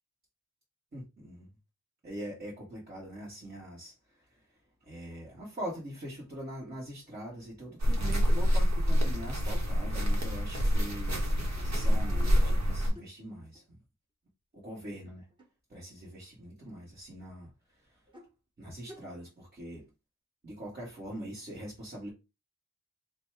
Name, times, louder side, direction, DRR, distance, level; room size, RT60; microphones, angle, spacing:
voice 1, 0.9-1.5 2.0-4.4 4.9-11.2 11.6-13.6 14.5-15.2 15.7-17.5 17.8-18.0 18.6-19.9 20.4-22.1, right 1 dB, 35° right, 1.6 m, -43 dB
sound 1, 7.8-12.9, equal, 65° right, 1.2 m, -27 dB
sound 2, 11.4-13.1 13.5-13.6 15.3-15.5 16.7-16.8 18.1-18.3 18.8-19.1, left 1 dB, 15° right, 1.1 m, -51 dB
4.0 x 2.3 x 4.5 m
wide cardioid pair, 125°, 29 cm